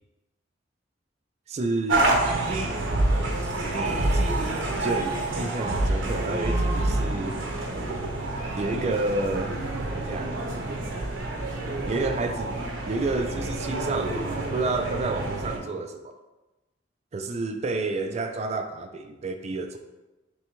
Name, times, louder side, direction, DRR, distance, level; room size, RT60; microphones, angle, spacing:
voice 1, 1.5-2.1 2.5-2.8 3.7-7.3 8.6-9.6 9.8-10.4 11.9-12.6 12.9-16.2 17.1-19.8, right 3 dB, 35° right, 6 dB, 0.3 m, -30 dB
sound 1, 1.9-15.6, right 2 dB, 85° right, 0.8 m, -27 dB
6.0 x 2.2 x 3.0 m, 1.1 s
head